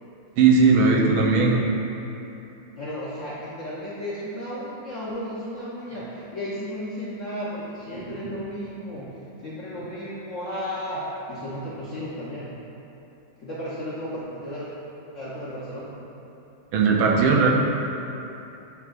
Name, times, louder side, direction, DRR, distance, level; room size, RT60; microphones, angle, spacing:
voice 1, 0.4-1.5 7.9-8.3 16.7-17.5, right 4 dB, 80° right, -2 dB, 1.5 m, -18 dB
voice 2, 2.8-9.1 9.4-12.5 13.4-14.7 15.1-15.9, equal, 65° left, -9 dB, 0.7 m, -34 dB
8.3 x 4.6 x 2.5 m, 2.9 s
omnidirectional pair, 2.3 m